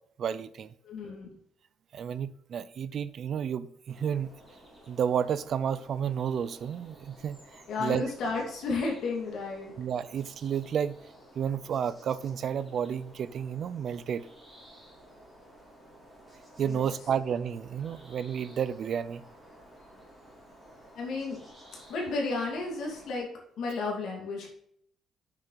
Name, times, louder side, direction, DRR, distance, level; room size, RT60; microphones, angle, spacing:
voice 1, 0.2-0.7 1.9-4.4 4.9-8.0 9.8-11.0 11.4-14.3 16.6-19.2, right 8 dB, 45° right, 0.5 m, -31 dB
voice 2, 0.8-1.3 7.7-9.7 16.6-16.9 17.9-18.0 20.9-21.4 21.9-23.3 23.6-24.5, left 3 dB, 60° left, 2.6 m, -32 dB
sound 1, 3.9-23.2, equal, ahead, 3.1 m, -54 dB
8.2 x 6.8 x 4.0 m
cardioid pair, 175°, 0 cm